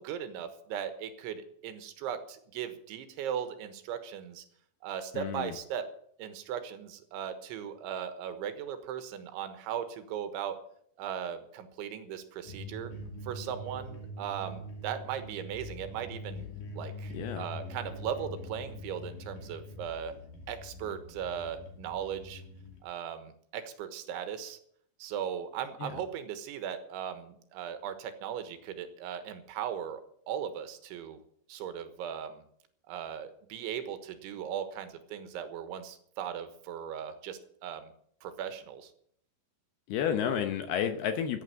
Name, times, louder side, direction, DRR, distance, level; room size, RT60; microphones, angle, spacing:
voice 1, 0.0-4.4 4.8-5.9 6.2-10.6 11.0-12.9 13.2-16.5 16.7-20.1 20.5-22.4 22.8-24.6 25.0-30.0 30.3-31.2 31.5-32.4 32.9-37.9 38.2-38.9, right 9 dB, 75° right, 9 dB, 3.5 m, -38 dB
voice 2, 5.1-5.5 17.1-17.5 25.8-25.9 39.9-41.4, left 8 dB, 80° left, 7 dB, 2.3 m, -31 dB
sound 1, 12.5-22.8, left 1 dB, 45° left, 3.4 m, -43 dB
15.5 x 8.9 x 7.6 m, 0.67 s
omnidirectional pair, 5.7 m